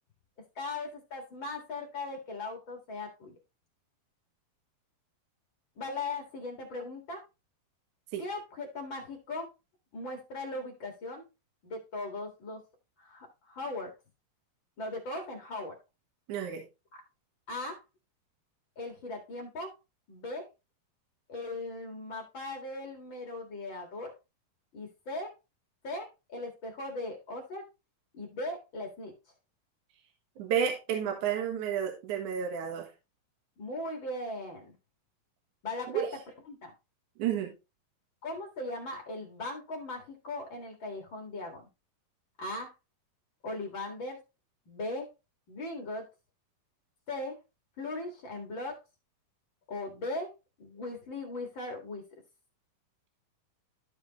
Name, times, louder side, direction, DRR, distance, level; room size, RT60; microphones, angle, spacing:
voice 1, 0.6-3.3 5.8-7.2 8.2-9.5 9.9-11.3 11.6-12.6 13.0-13.9 14.8-15.7 16.9-17.0 17.5-17.8 18.8-19.7 20.1-20.5 21.3-24.1 24.7-25.3 25.8-27.7 28.1-29.1 33.6-34.7 35.6-36.1 36.5-36.7 38.2-41.7 42.4-42.7 43.4-44.2 44.7-45.1 45.5-46.1 47.1-47.4 47.8-48.8 49.7-50.3 50.6-52.0, left 2 dB, 40° left, 2 dB, 2.2 m, -38 dB
voice 2, 16.3-16.6 30.4-32.9 35.9-36.2 37.2-37.5, right 8 dB, 65° right, 3 dB, 2.7 m, -31 dB
13.0 x 4.9 x 3.0 m, 0.26 s
omnidirectional pair, 4.0 m